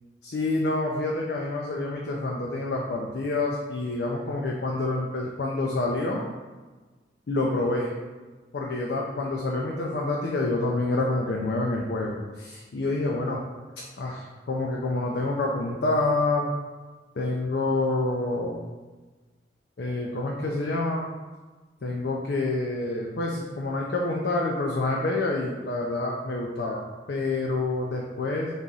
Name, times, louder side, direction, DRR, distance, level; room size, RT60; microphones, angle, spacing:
voice 1, 0.3-6.3 7.3-7.9 8.5-13.4 14.0-16.5 17.2-18.6 19.8-21.1 21.8-28.5, left 2 dB, 60° left, -1 dB, 0.5 m, -27 dB
4.0 x 3.0 x 3.8 m, 1.3 s
head